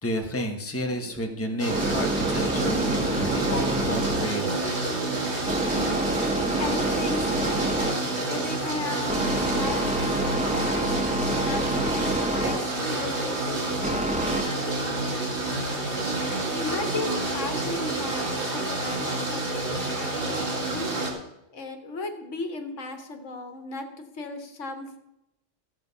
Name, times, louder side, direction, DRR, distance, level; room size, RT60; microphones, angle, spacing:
voice 1, 0.0-4.6, equal, 10° left, 3 dB, 1.1 m, -31 dB
sound 1, 0.9-14.4, right 1 dB, 5° right, 0.7 m, -29 dB
sound 2, 1.6-21.1, right 2 dB, 60° right, 2.4 m, -29 dB
voice 2, 6.6-7.7 8.2-11.0 11.3-15.3 16.5-20.9 21.5-23.9 24.1-25.0, left 3 dB, 80° left, 6 dB, 1.6 m, -36 dB
13.5 x 7.6 x 5.5 m, 0.85 s
omnidirectional pair, 1.3 m